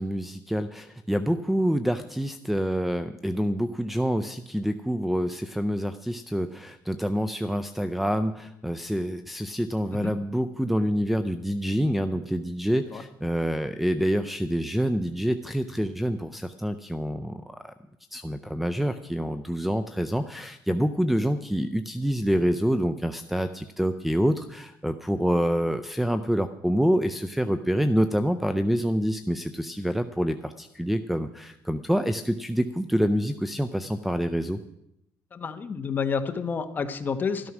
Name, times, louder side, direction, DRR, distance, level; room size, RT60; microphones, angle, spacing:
voice 1, 0.0-17.7 18.1-34.6, equal, ahead, 11 dB, 0.4 m, -27 dB
voice 2, 35.3-37.5, left 5 dB, 25° left, 8 dB, 1.1 m, -29 dB
13.0 x 12.5 x 6.1 m, 0.82 s
cardioid pair, 150°, 7 cm